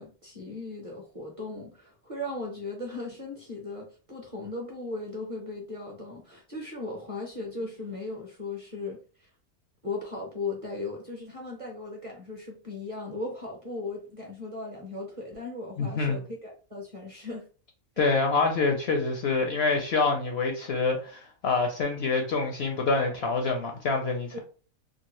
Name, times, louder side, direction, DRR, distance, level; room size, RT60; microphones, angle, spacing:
voice 1, 0.0-9.3 9.8-17.4 24.3-24.4, left 2 dB, 30° right, 0.7 m, -37 dB
voice 2, 15.8-16.2 18.0-24.4, left 3 dB, 65° left, 0.7 m, -26 dB
2.7 x 2.4 x 3.0 m
omnidirectional pair, 1.4 m